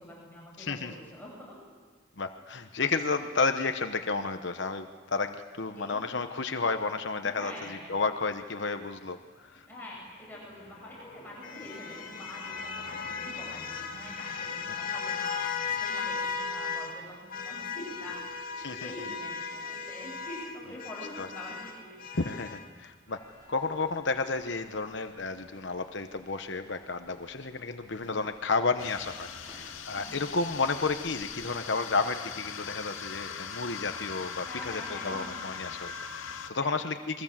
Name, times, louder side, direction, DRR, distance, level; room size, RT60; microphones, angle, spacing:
voice 1, 0.0-1.6 5.7-6.0 7.4-8.0 9.7-15.4 15.8-18.2 18.5-22.0 29.9-30.3 34.4-35.3 36.6-36.9, left 1 dB, 10° left, -4 dB, 7.1 m, -45 dB
voice 2, 0.6-0.9 2.2-9.2 18.6-18.9 21.2-21.3 22.1-23.2 23.5-37.2, left 4 dB, 60° left, 7 dB, 1.0 m, -32 dB
sound 1, 10.3-17.0 17.3-22.7, left 5 dB, 45° left, 2.2 m, -37 dB
sound 2, 23.1-31.6, equal, 20° right, 6.0 m, -58 dB
sound 3, 28.8-36.5, left 7 dB, 85° left, 2.2 m, -40 dB
29.0 x 22.5 x 7.5 m, 1.5 s
head